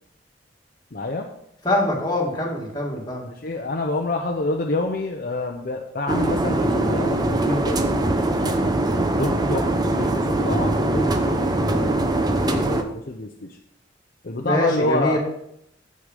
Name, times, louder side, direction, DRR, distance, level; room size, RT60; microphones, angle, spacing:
voice 1, 0.9-1.3 3.2-8.6 9.2-13.6 14.2-15.2, left 2 dB, 50° left, 2 dB, 0.7 m, -28 dB
voice 2, 1.6-3.3 14.4-15.2, left 1 dB, 20° left, -3 dB, 2.1 m, -23 dB
sound 1, 6.1-12.8, right 2 dB, 20° right, 0.6 m, -22 dB
7.8 x 6.5 x 5.1 m, 0.75 s
head